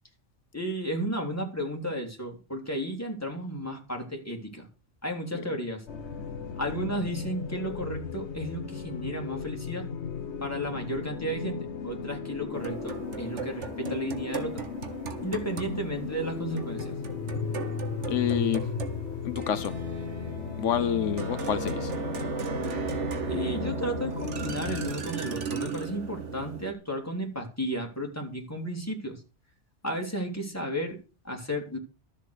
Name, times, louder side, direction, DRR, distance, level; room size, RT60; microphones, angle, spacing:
voice 1, 0.5-4.7 5.0-5.8 6.6-9.9 10.4-14.7 15.2-16.9 23.2-29.2 29.8-31.0 31.2-31.8, equal, 15° left, 3.2 m, -33 dB
sound 1, 5.9-24.9, left 6 dB, 70° left, 1.4 m, -36 dB
sound 2, 12.5-26.7, right 6 dB, 80° right, 1.7 m, -36 dB
voice 2, 18.1-18.6 19.2-19.7 20.6-21.9, left 9 dB, 90° left, 1.2 m, -28 dB
13.0 x 7.3 x 6.6 m
omnidirectional pair, 1.2 m